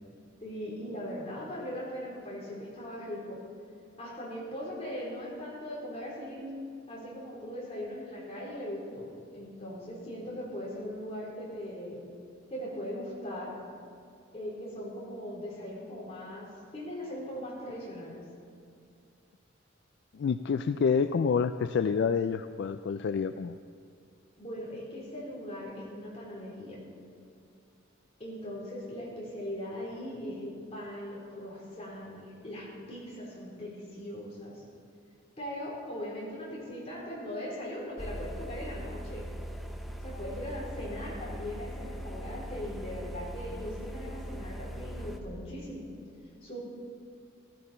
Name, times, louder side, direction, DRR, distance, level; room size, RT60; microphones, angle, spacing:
voice 1, 0.4-3.4 4.0-6.5 6.9-12.0 12.5-13.5 14.3-18.2 24.4-26.8 28.2-34.6 35.4-39.3 40.0-45.9 46.4-46.6, equal, 30° left, -5 dB, 3.7 m, -39 dB
voice 2, 20.1-23.6, left 6 dB, 60° left, 10 dB, 0.3 m, -28 dB
sound 1, 38.0-45.2, equal, ahead, 0.7 m, -40 dB
15.0 x 13.5 x 4.3 m, 2.4 s
head